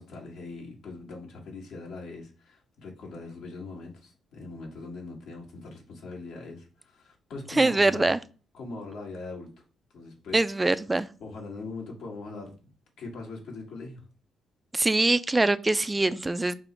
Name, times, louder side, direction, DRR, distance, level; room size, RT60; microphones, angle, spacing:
voice 1, 0.0-8.1 8.5-9.5 9.9-10.7 11.2-14.0, left 3 dB, 75° left, -1 dB, 1.6 m, -41 dB
voice 2, 7.6-8.2 10.3-11.1 14.7-16.6, right 2 dB, 15° right, 14 dB, 0.3 m, -23 dB
5.0 x 2.0 x 4.5 m, 0.37 s
cardioid pair, 90°, 0 cm